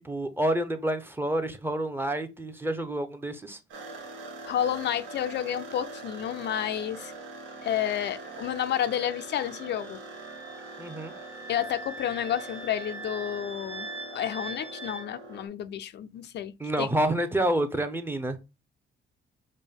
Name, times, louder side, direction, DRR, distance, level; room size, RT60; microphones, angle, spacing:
voice 1, 0.0-3.6 10.8-11.1 16.6-18.4, right 1 dB, 10° right, 0.6 m, -28 dB
sound 1, 3.7-15.5, right 3 dB, 80° right, 1.2 m, -43 dB
voice 2, 4.4-7.1 7.6-10.0 11.5-16.9, left 10 dB, 60° left, 0.4 m, -30 dB
Wind instrument woodwind instrument, 7.8-15.1, right 2 dB, 30° right, 1.1 m, -43 dB
5.2 x 2.1 x 3.6 m
cardioid pair, 90°, 20 cm